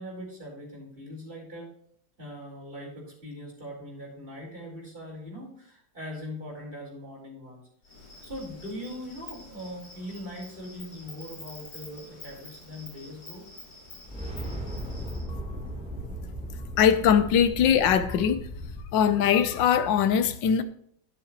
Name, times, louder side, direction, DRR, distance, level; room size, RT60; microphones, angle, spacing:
voice 1, 0.0-1.7 2.2-7.7 8.2-13.5, equal, 25° right, -3 dB, 4.8 m, -41 dB
Insect, 7.8-15.2, left 2 dB, 50° left, 3.4 m, -47 dB
sound 1, 14.0-18.8, right 1 dB, 5° right, 3.4 m, -37 dB
voice 2, 16.8-18.5 18.9-20.6, left 8 dB, 75° left, 11 dB, 1.6 m, -21 dB
11.0 x 10.0 x 3.1 m, 0.68 s
omnidirectional pair, 2.0 m